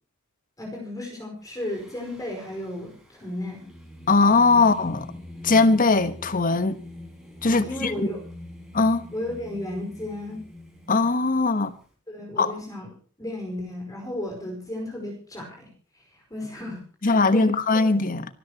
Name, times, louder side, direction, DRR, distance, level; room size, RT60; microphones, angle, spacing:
voice 1, 0.6-3.6 4.5-4.6 7.4-8.2 9.1-10.4 12.1-12.9 13.2-15.7 16.3-17.9, left 1 dB, 15° left, 5.1 m, -34 dB
Singing, 1.4-11.9, left 1 dB, ahead, 5.7 m, -44 dB
voice 2, 4.1-5.0 5.4-6.8 7.4-7.9 8.7-9.1 10.9-11.7 12.4-12.5 17.0-18.3, left 3 dB, 40° left, 1.2 m, -20 dB
26.0 x 13.5 x 3.0 m
head